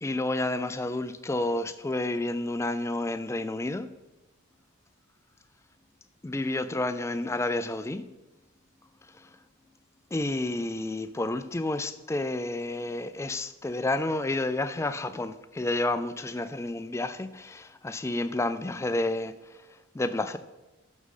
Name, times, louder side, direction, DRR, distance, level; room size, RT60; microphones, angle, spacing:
voice 1, 0.0-3.9 6.2-8.1 9.1-9.3 10.1-20.4, left 2 dB, 15° left, 0.3 m, -30 dB
6.4 x 6.2 x 5.4 m
head